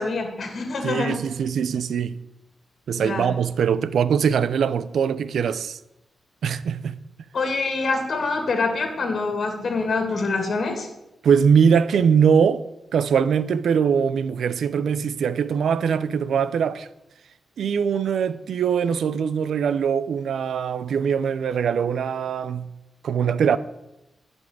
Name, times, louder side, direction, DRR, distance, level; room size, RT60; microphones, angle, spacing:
voice 1, 0.0-1.2 2.9-3.3 7.3-10.9, left 3 dB, 45° left, 2.1 m, -25 dB
voice 2, 0.8-2.2 2.9-5.8 6.4-7.0 11.2-12.6 12.9-16.9 17.6-22.7 23.0-23.6, right 7 dB, 80° right, 0.6 m, -22 dB
11.5 x 5.5 x 8.8 m
wide cardioid pair, 155°, 0 cm